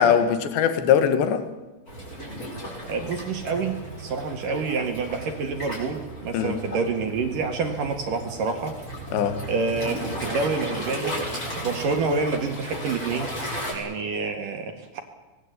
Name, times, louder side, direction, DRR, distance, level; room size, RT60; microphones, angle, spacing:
voice 1, 0.0-1.4 6.3-6.6 9.1-9.5, left 8 dB, 70° left, 9 dB, 4.0 m, -21 dB
Waves surf, 1.9-13.7, equal, 15° left, 8.2 m, -35 dB
voice 2, 2.9-8.7 9.5-11.1 11.6-13.3 13.7-15.0, right 4 dB, 55° right, 5 dB, 3.2 m, -28 dB
26.0 x 20.5 x 8.5 m, 1.1 s
omnidirectional pair, 5.5 m